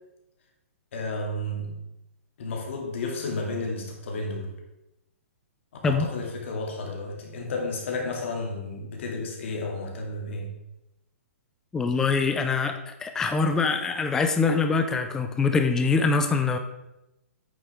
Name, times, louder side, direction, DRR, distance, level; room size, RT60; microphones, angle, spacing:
voice 1, 0.9-1.7 2.4-4.5 5.8-10.5, left 2 dB, 55° left, 1 dB, 2.2 m, -32 dB
voice 2, 11.7-16.6, left 4 dB, 5° left, 6 dB, 0.4 m, -24 dB
8.7 x 6.7 x 3.5 m, 0.93 s
hypercardioid pair, 155°, 8 cm